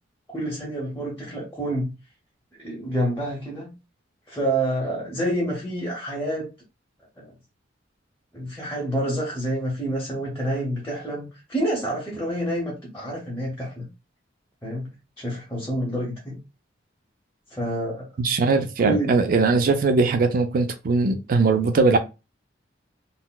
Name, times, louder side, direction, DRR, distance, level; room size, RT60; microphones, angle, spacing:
voice 1, 0.3-1.9 2.6-3.7 4.3-6.5 7.2-7.3 8.3-13.9 14.6-14.9 15.2-16.4 17.5-18.1 18.8-19.2, right 1 dB, 15° left, 0.8 m, -28 dB
voice 2, 18.2-22.0, right 3 dB, 50° right, 0.4 m, -20 dB
3.9 x 2.0 x 2.2 m
head